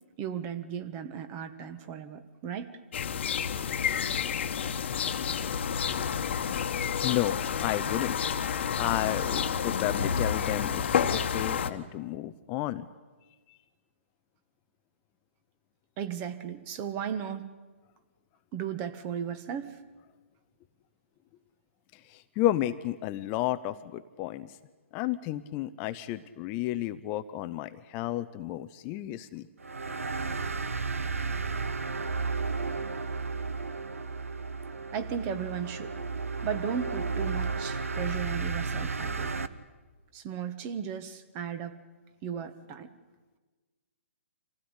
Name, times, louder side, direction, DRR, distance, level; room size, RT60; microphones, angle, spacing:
voice 1, 0.2-2.8 16.0-17.5 18.5-19.8 34.9-35.9 36.4-39.3 40.1-41.8 42.2-42.9, right 8 dB, 30° right, 11 dB, 1.4 m, -35 dB
sound 1, 2.9-11.7, left 7 dB, 55° left, 1.3 m, -29 dB
voice 2, 7.0-8.2 8.8-12.9 13.5-13.6 21.9-24.6 24.9-29.5, left 14 dB, 30° left, 12 dB, 0.6 m, -32 dB
sound 2, 29.6-39.5, right 4 dB, 90° right, 1.1 m, -33 dB
25.5 x 16.0 x 9.9 m, 1.3 s
hypercardioid pair, 140°, 7 cm